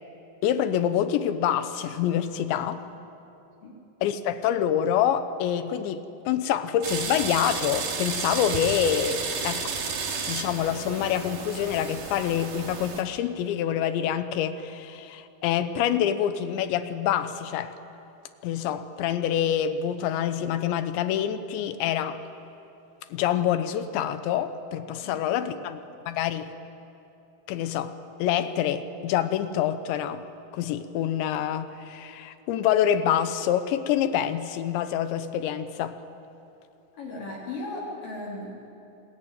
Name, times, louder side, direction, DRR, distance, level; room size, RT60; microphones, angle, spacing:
voice 1, 0.4-2.8 4.0-9.7 10.3-17.7 18.4-22.2 23.1-25.8 26.1-26.5 27.5-30.2 30.5-36.0, left 10 dB, 80° left, 11 dB, 3.2 m, -26 dB
sound 1, 6.8-13.0, right 5 dB, 55° right, 3.4 m, -32 dB
voice 2, 25.0-25.6 36.9-38.5, left 2 dB, 50° left, -4 dB, 4.8 m, -37 dB
27.5 x 20.5 x 9.2 m, 2.8 s
omnidirectional pair, 5.2 m